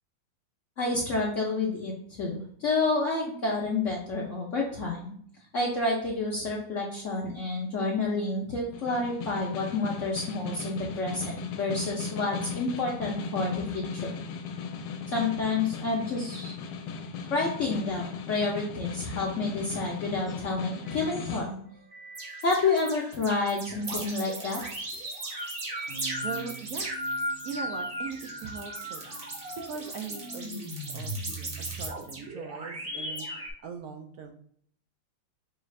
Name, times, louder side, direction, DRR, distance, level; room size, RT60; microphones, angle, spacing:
voice 1, 0.8-5.1 5.5-14.1 15.1-16.5 17.3-21.6 22.4-24.6, left 3 dB, 60° left, -3 dB, 0.8 m, -29 dB
Snare drum, 8.7-21.5, left 6 dB, 80° left, 1.3 m, -37 dB
sound 1, 20.3-20.4 20.8-21.4 21.9-33.5, right 1 dB, 40° right, 0.8 m, -36 dB
voice 2, 26.2-26.9 27.4-29.1 29.7-34.3, right 5 dB, 75° right, 5 dB, 0.8 m, -40 dB
5.4 x 2.5 x 3.1 m, 0.63 s
omnidirectional pair, 2.0 m